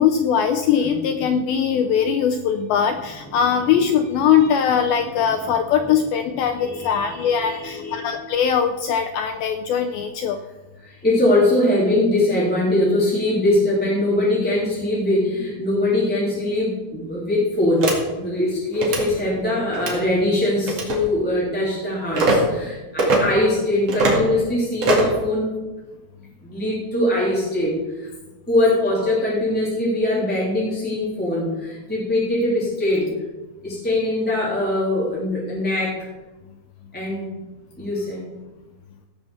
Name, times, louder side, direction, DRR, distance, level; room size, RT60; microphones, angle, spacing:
voice 1, 0.0-10.4, left 8 dB, 90° left, 6 dB, 2.1 m, -21 dB
voice 2, 6.6-8.1 10.8-17.8 18.1-25.5 26.4-28.1 28.5-33.1 33.6-36.0 36.9-37.4 37.8-38.3, left 1 dB, 5° left, -6 dB, 2.2 m, -22 dB
sound 1, 17.8-18.0 18.7-19.0 19.7-20.0 20.7-21.0 22.1-22.4 23.0-23.2 23.9-24.2 24.8-25.2, right 3 dB, 45° right, 2.7 m, -20 dB
17.0 x 5.8 x 7.1 m, 1.2 s
omnidirectional pair, 4.9 m